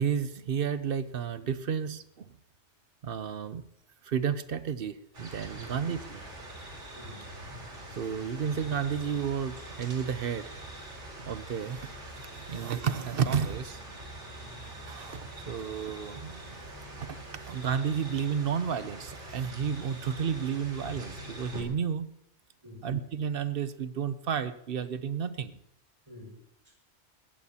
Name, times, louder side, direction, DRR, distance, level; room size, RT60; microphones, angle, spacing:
voice 1, 0.0-2.3 3.0-3.6 4.0-6.2 7.9-10.5 11.2-11.9 12.5-13.8 14.9-16.6 17.0-22.1 22.8-25.6, right 7 dB, 55° right, 13 dB, 0.8 m, -32 dB
sound 1, 5.1-21.6, right 1 dB, 70° right, 2.7 m, -44 dB
sound 2, 5.3-17.2, equal, 20° left, 3.1 m, -51 dB
sound 3, 6.9-13.3 15.5-21.6, equal, 85° left, 5.5 m, -62 dB
voice 2, 6.9-7.3 12.4-12.6 22.6-22.9 26.1-26.7, left 1 dB, 25° right, -2 dB, 6.2 m, -49 dB
19.0 x 15.0 x 2.8 m, 0.73 s
omnidirectional pair, 1.3 m